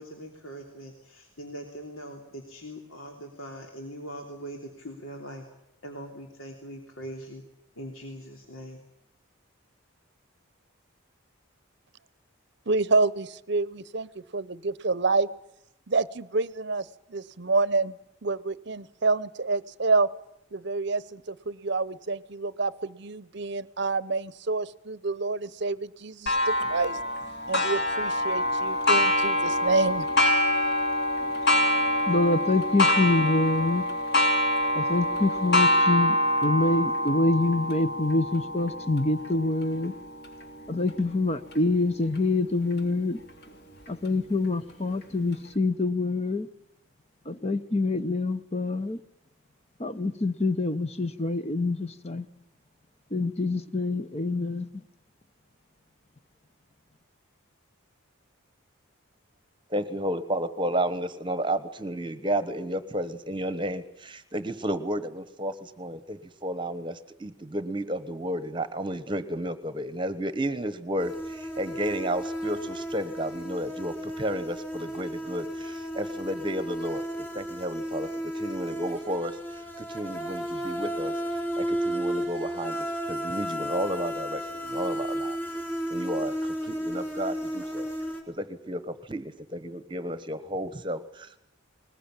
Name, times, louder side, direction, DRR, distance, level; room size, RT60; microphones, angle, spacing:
voice 1, 0.0-5.4 5.8-7.4 7.8-8.8, equal, 75° left, 2 dB, 3.1 m, -41 dB
voice 2, 12.7-15.3 15.9-16.8 17.1-17.9 18.2-20.1 20.5-27.0 27.5-30.1, right 3 dB, 55° right, 18 dB, 0.8 m, -28 dB
Clock, 26.3-41.6 42.2-42.3 42.8-42.9 43.9-44.0, left 1 dB, 50° left, 2.9 m, -26 dB
voice 3, 32.1-33.8 34.7-39.9 40.7-43.2 43.9-46.5 47.3-49.0 49.8-52.3 53.1-54.7, left 2 dB, 30° left, 11 dB, 0.9 m, -26 dB
voice 4, 59.7-78.1 78.3-85.4 85.9-87.9 88.3-91.4, right 1 dB, 25° right, 13 dB, 1.1 m, -32 dB
sound 1, 71.0-88.2, equal, 10° left, 4.4 m, -33 dB
21.0 x 20.5 x 8.9 m, 0.82 s
head